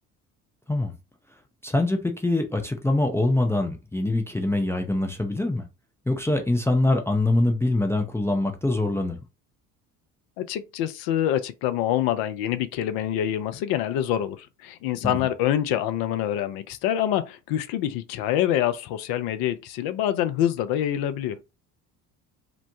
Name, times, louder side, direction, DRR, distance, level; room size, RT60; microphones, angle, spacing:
voice 1, 1.6-5.6 6.1-9.2 15.1-15.3, left 2 dB, 5° left, 0.5 m, -24 dB
voice 2, 10.4-21.4, left 11 dB, 55° left, 0.6 m, -26 dB
3.0 x 2.1 x 2.6 m
figure-of-eight pair, 55°, 45 cm